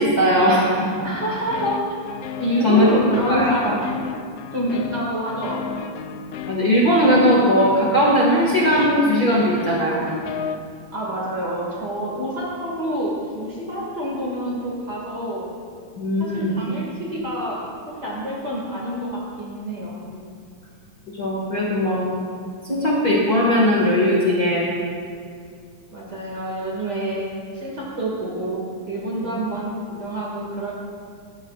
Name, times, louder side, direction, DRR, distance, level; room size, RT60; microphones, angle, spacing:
voice 1, 0.0-1.0 2.6-2.9 3.3-3.6 6.5-10.0 16.0-16.5 19.9-20.1 21.2-22.1 22.6-24.7 29.2-29.3, equal, 35° left, -5 dB, 1.9 m, -18 dB
voice 2, 1.0-1.8 2.4-3.9 4.5-5.9 10.9-15.5 16.2-17.6 18.0-19.9 25.9-27.3 27.5-30.7, equal, 35° right, -5 dB, 2.2 m, -27 dB
sound 1, 1.1-10.6, left 6 dB, 85° left, 1.4 m, -33 dB
16.0 x 12.5 x 2.4 m, 2.2 s
omnidirectional pair, 3.4 m